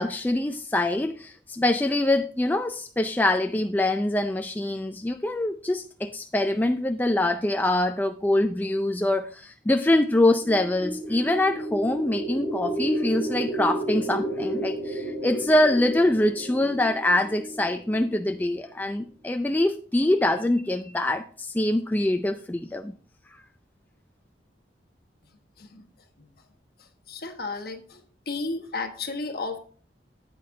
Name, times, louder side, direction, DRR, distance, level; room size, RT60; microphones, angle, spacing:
voice 1, 0.0-22.9, left 1 dB, 10° left, 6 dB, 0.3 m, -24 dB
sound 1, 10.3-18.4, right 1 dB, 40° right, 4.9 m, -32 dB
voice 2, 27.1-28.0 28.3-29.6, left 3 dB, 55° left, 5 dB, 1.3 m, -33 dB
9.7 x 8.5 x 2.7 m, 0.42 s
head